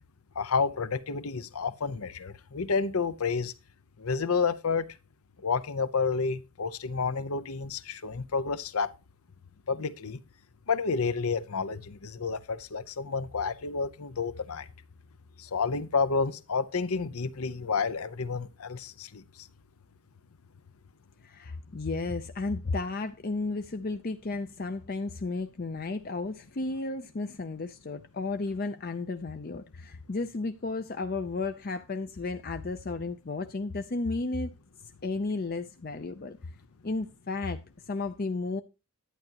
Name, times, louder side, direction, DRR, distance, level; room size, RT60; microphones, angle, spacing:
voice 1, 0.4-3.5 4.0-4.9 5.4-8.9 9.7-10.2 10.7-14.7 15.4-19.2, left 5 dB, 75° left, 0.8 m, -30 dB
voice 2, 21.2-34.5 35.0-36.4 36.8-38.6, left 3 dB, 40° left, 0.6 m, -33 dB
11.5 x 9.4 x 2.9 m
head